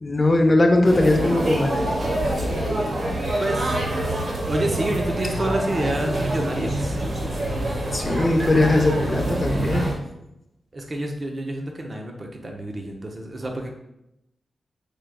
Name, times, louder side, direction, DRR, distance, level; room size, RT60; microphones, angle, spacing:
voice 1, 0.0-2.0 7.9-9.9, left 2 dB, 35° left, 4 dB, 0.6 m, -20 dB
sound 1, 0.8-9.9, right 1 dB, 60° right, 0.9 m, -26 dB
voice 2, 3.4-3.7 4.5-7.0 10.7-13.7, right 1 dB, 40° right, 2 dB, 0.6 m, -28 dB
4.7 x 3.3 x 2.2 m, 0.86 s
cardioid pair, 65°, 0 cm